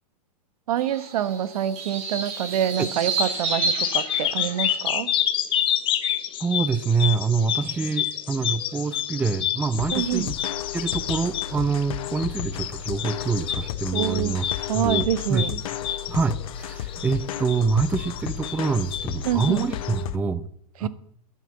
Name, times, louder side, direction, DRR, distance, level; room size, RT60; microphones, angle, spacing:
voice 1, 0.7-5.1 9.9-10.3 13.9-14.4 14.7-15.6 19.2-19.7 20.8-20.9, right 10 dB, 70° right, 15 dB, 1.1 m, -26 dB
sound 1, 0.8-4.8, right 4 dB, 35° right, 3.7 m, -30 dB
sound 2, 3.0-20.0, left 11 dB, 25° left, 1.1 m, -29 dB
voice 2, 6.4-10.3 10.7-14.5 14.7-15.5 16.1-20.5 20.8-20.9, right 4 dB, 10° right, 15 dB, 0.5 m, -26 dB
sound 3, 9.8-20.2, left 11 dB, 65° left, 1.0 m, -34 dB
11.0 x 9.5 x 7.7 m, 0.68 s
hypercardioid pair, 140°, 20 cm